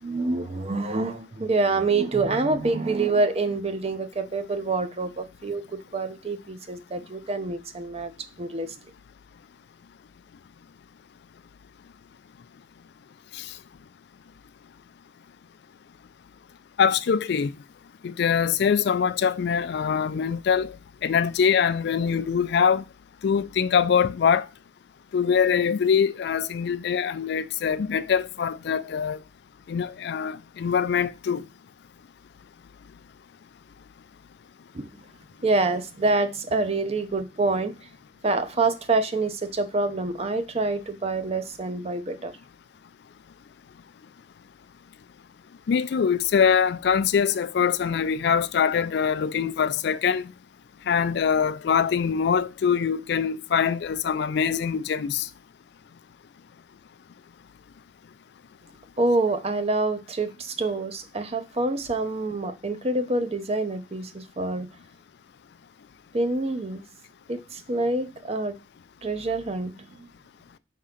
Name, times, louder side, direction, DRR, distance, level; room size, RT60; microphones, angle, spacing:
voice 1, 0.0-8.1 8.4-8.7 34.7-34.9 35.4-37.7 38.2-42.4 59.0-64.7 66.1-66.8 67.3-68.6 69.0-70.1, right 3 dB, 35° right, 0.6 m, -26 dB
voice 2, 16.8-17.5 18.0-20.7 21.0-22.8 23.2-24.5 25.1-29.2 29.7-31.4 45.7-50.3 50.9-55.3, left 7 dB, 60° left, 0.3 m, -23 dB
4.8 x 3.7 x 5.6 m
head